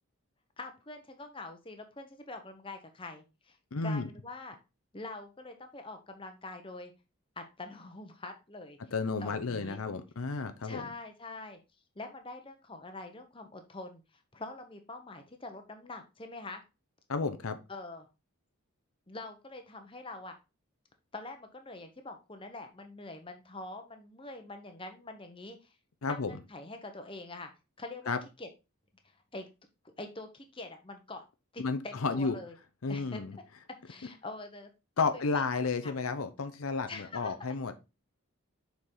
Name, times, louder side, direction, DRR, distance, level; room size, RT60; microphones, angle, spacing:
voice 1, 0.6-3.6 3.8-4.6 4.9-6.9 7.4-8.8 9.2-9.8 10.6-11.6 11.9-16.6 17.7-18.1 19.1-20.3 21.1-25.7 26.1-27.5 27.8-28.5 29.0-29.5 29.8-31.2 31.5-32.5 32.9-33.2 33.8-34.7 35.1-35.4 35.8-35.9 36.9-37.7, left 2 dB, 25° left, 1.0 m, -44 dB
voice 2, 3.7-4.1 8.9-10.8 17.1-17.6 26.0-26.3 28.1-28.2 31.6-32.4 32.8-33.3 35.0-37.7, left 4 dB, 75° left, 0.7 m, -32 dB
6.7 x 4.6 x 3.7 m
head